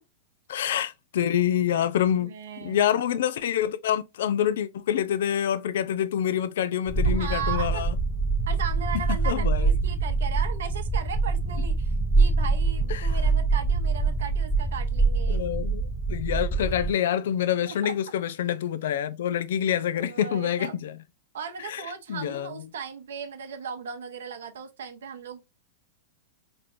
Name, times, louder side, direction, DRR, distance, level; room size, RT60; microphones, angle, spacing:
voice 1, 0.5-8.0 9.2-9.7 12.9-13.2 15.3-21.0 21.6-21.8 22.1-22.5, left 10 dB, 70° left, 0.5 m, -27 dB
voice 2, 2.1-2.8 7.0-7.9 8.5-15.5 17.7-17.9 19.9-20.7 21.3-25.5, right 7 dB, 70° right, 0.9 m, -37 dB
sound 1, 6.9-16.9, right 3 dB, 10° left, 0.7 m, -25 dB
4.3 x 3.2 x 2.5 m
hypercardioid pair, 105°, 0 cm